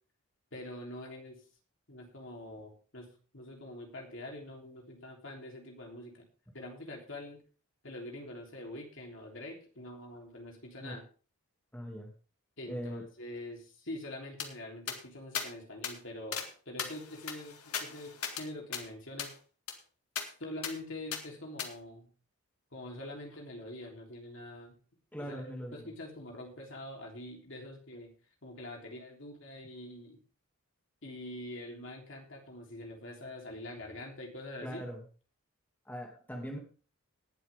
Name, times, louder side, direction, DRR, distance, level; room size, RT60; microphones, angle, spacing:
voice 1, 0.5-1.4 1.9-6.2 6.5-7.4 7.8-11.0 12.6-19.3 20.4-22.1 22.7-24.7 25.2-25.4 25.7-28.1 28.4-30.2 31.0-34.8, left 1 dB, 55° left, 1 dB, 3.4 m, -45 dB
voice 2, 11.7-12.1 12.7-13.0 25.1-25.9 34.6-35.0 35.9-36.6, equal, 10° left, 0 dB, 2.3 m, -40 dB
sound 1, 14.4-14.5 14.9-15.0 15.3-15.5 15.8-15.9 16.3-16.5 16.8-18.4 18.7-18.8 19.2-19.3 19.7-19.8 20.2-20.3 20.6-20.7 21.1-21.2 21.6-21.7, left 7 dB, 85° left, 2.2 m, -37 dB
19.5 x 8.0 x 3.6 m, 0.37 s
head